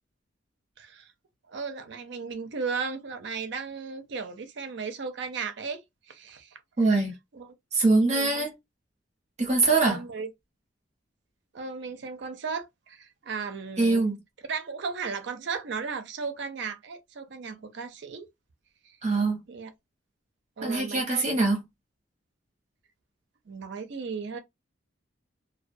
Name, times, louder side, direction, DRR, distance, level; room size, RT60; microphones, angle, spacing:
voice 1, 0.8-1.1 1.5-6.6 7.4-7.5 8.1-8.5 9.8-10.3 11.5-14.1 14.5-18.3 19.5-19.7 20.6-21.2 23.5-24.4, right 5 dB, 60° right, 0.5 m, -35 dB
voice 2, 6.8-7.1 7.7-8.6 9.4-10.0 13.8-14.2 19.0-19.4 20.6-21.6, right 3 dB, 35° right, 0.8 m, -23 dB
2.2 x 2.2 x 2.5 m
head